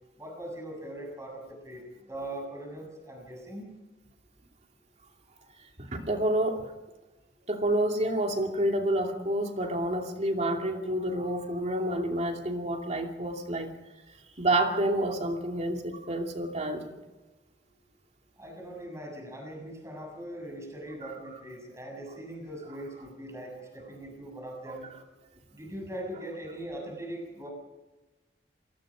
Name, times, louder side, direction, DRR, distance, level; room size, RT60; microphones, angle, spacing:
voice 1, 0.2-1.8 2.1-3.7 6.0-6.1 18.4-24.9 25.5-27.5, right 1 dB, 15° right, 0 dB, 7.5 m, -41 dB
voice 2, 5.8-6.7 7.5-13.7 14.4-17.0, right 1 dB, 40° right, 3 dB, 2.7 m, -29 dB
27.0 x 19.5 x 5.2 m, 1.1 s
head